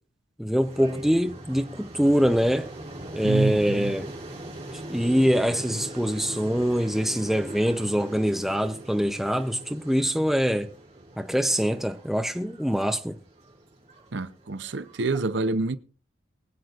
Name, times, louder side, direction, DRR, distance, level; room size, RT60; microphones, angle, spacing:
voice 1, 0.4-2.7 3.1-4.1 4.9-10.7 11.2-13.2, equal, ahead, 0.6 m, -24 dB
sound 1, 0.6-15.2, right 1 dB, 35° right, 5.5 m, -42 dB
voice 2, 3.2-3.9 14.1-15.8, right 3 dB, 60° right, 0.6 m, -27 dB
23.5 x 7.9 x 2.5 m
head